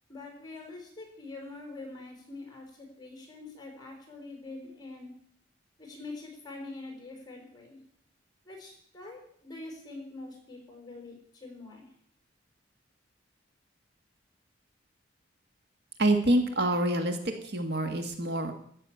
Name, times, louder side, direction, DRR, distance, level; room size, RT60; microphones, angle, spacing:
voice 1, 0.1-5.1 5.8-7.8 8.4-11.9, left 2 dB, 20° left, 1 dB, 4.4 m, -44 dB
voice 2, 16.0-18.5, right 1 dB, 55° right, 6 dB, 1.5 m, -26 dB
14.0 x 6.5 x 8.8 m, 0.65 s
head